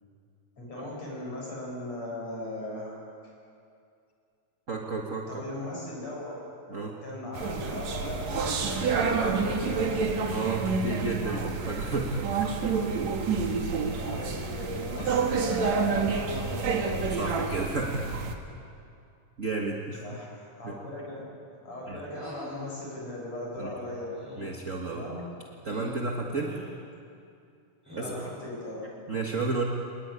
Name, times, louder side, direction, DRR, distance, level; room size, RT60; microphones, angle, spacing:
voice 1, 0.6-3.0 5.3-6.4 7.0-10.1 13.9-17.0 20.0-21.3 21.6-24.2 24.9-25.2 28.0-28.9, left 1 dB, 50° left, -4 dB, 8.3 m, -37 dB
voice 2, 4.7-5.4 6.7-7.0 10.3-12.5 14.9-15.1 17.2-18.3 19.4-20.0 20.6-20.7 21.9-22.0 23.6-23.7 24.4-25.0 25.6-26.6 28.0-28.1 29.1-29.6, right 3 dB, 35° right, 0 dB, 1.2 m, -32 dB
sound 1, 7.3-18.3, right 5 dB, 55° right, 3.0 m, -29 dB
sound 2, 22.1-22.6 24.1-24.7 25.6-26.0 26.4-26.8 27.9-28.4, equal, 5° right, 7.7 m, -43 dB
25.0 x 22.0 x 9.9 m, 2.5 s
omnidirectional pair, 3.9 m